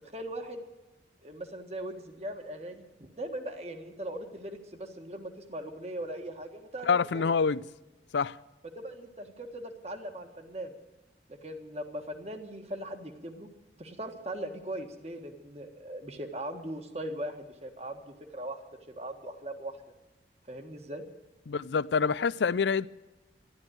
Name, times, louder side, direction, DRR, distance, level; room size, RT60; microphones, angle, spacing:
voice 1, 0.1-0.6 1.2-7.3 8.7-10.7 11.3-13.5 13.8-18.0 18.3-18.6 19.0-19.8 20.5-21.0, right 1 dB, 35° right, 1.6 m, -39 dB
voice 2, 6.9-7.6 8.1-8.4 21.5-22.9, left 5 dB, 90° left, 0.5 m, -26 dB
13.0 x 11.5 x 9.2 m
head